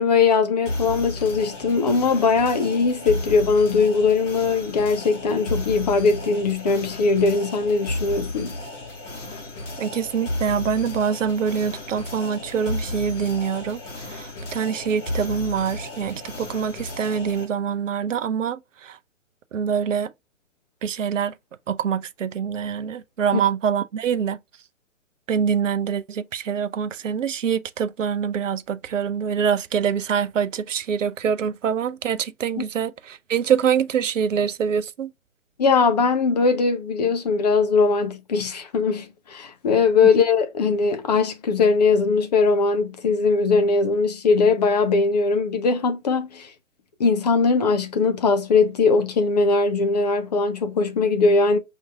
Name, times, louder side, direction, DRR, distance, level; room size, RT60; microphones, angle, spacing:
voice 1, 0.0-8.5 23.3-23.4 32.6-32.7 35.6-46.5 47.0-51.6, left 4 dB, 35° left, 0.5 m, -20 dB
sound 1, 0.6-17.4, left 2 dB, 65° left, 1.4 m, -33 dB
voice 2, 9.8-13.8 14.1-19.0 19.5-20.1 20.8-21.3 21.7-24.4 25.3-35.1, right 7 dB, 70° right, 0.5 m, -25 dB
5.2 x 2.6 x 2.2 m
figure-of-eight pair, 125°, 39 cm